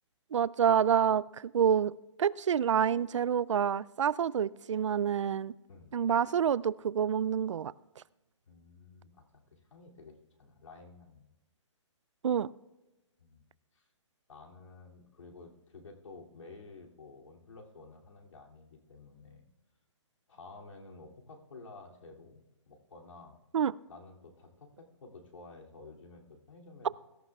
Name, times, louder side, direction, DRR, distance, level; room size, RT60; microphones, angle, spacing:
voice 1, 0.3-1.9 2.2-5.5 5.9-8.0 12.2-12.5 23.5-23.8, right 8 dB, 70° right, 20 dB, 0.4 m, -28 dB
voice 2, 5.7-6.0 8.5-9.2 9.5-11.3 13.2-13.4 13.7-13.9 14.3-19.5 20.3-23.4 23.9-26.9, left 3 dB, 80° left, 0 dB, 2.7 m, -52 dB
23.5 x 14.0 x 2.4 m, 1.0 s
hypercardioid pair, 175°, 16 cm